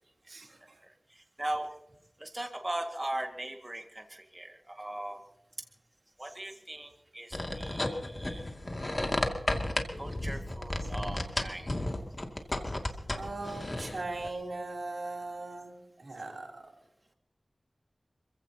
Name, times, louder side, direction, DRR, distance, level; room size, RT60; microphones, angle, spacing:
voice 1, 0.8-1.7 2.2-5.2 6.2-8.4 10.0-11.7, right 1 dB, 30° right, 3 dB, 1.9 m, -39 dB
sound 1, 7.3-14.3, left 1 dB, 40° left, 2.3 m, -33 dB
voice 2, 13.1-15.7 16.0-16.5, right 2 dB, 75° right, 1 dB, 3.2 m, -38 dB
26.5 x 16.0 x 2.9 m, 0.85 s
wide cardioid pair, 45°, 0 cm